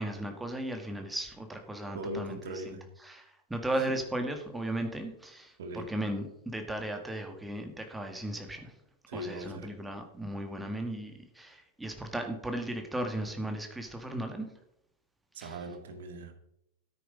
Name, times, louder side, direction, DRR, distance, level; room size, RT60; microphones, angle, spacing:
voice 1, 0.0-2.4 2.7-2.8 3.0-8.7 9.1-14.5 15.4-15.6, right 1 dB, 5° right, 4 dB, 2.1 m, -36 dB
voice 2, 1.9-2.9 3.7-3.9 5.6-5.9 8.2-8.3 9.1-9.7 15.3-16.3, right 1 dB, 60° right, 7 dB, 2.1 m, -40 dB
13.5 x 9.2 x 5.2 m, 0.78 s
figure-of-eight pair, 90°, 0 cm